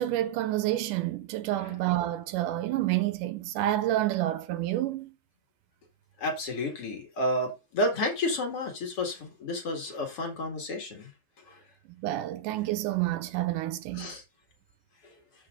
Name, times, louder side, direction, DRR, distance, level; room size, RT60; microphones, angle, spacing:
voice 1, 0.0-5.1 12.0-14.1, right 14 dB, 80° right, 2.2 m, -29 dB
voice 2, 6.2-11.1 11.5-11.6 13.9-14.2, left 1 dB, 45° left, 2.7 m, -31 dB
13.5 x 4.9 x 2.5 m
omnidirectional pair, 3.8 m